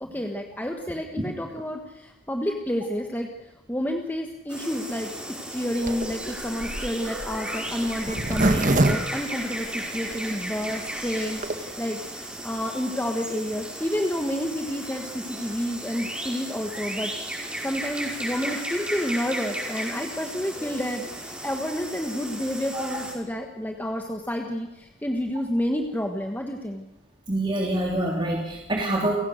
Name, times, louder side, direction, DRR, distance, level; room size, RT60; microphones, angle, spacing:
voice 1, 0.0-3.3 3.7-5.1 5.5-26.8, equal, 10° left, 3 dB, 1.6 m, -30 dB
sound 1, 4.5-23.1, right 1 dB, 5° right, 5.3 m, -35 dB
Zipper (clothing), 5.8-10.1 10.6-10.7 10.9-11.0 11.2-11.5, right 2 dB, 45° right, 1.6 m, -25 dB
voice 2, 27.3-29.2, right 1 dB, 25° right, -2 dB, 3.4 m, -26 dB
29.5 x 17.0 x 6.7 m, 0.96 s
head